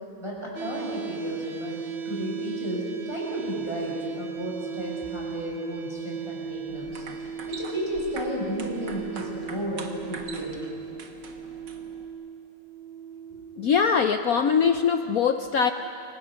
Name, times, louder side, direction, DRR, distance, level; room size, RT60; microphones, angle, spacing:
voice 1, 0.2-7.0 7.5-10.6 13.3-13.4, equal, 10° left, -4 dB, 6.7 m, -33 dB
sound 1, 0.6-14.5, right 6 dB, 75° right, 2.2 m, -37 dB
sound 2, 6.7-12.1, right 4 dB, 60° right, 2.3 m, -43 dB
voice 2, 13.6-15.7, left 6 dB, 65° left, 8 dB, 0.9 m, -22 dB
28.5 x 24.5 x 6.6 m, 2.6 s
omnidirectional pair, 2.3 m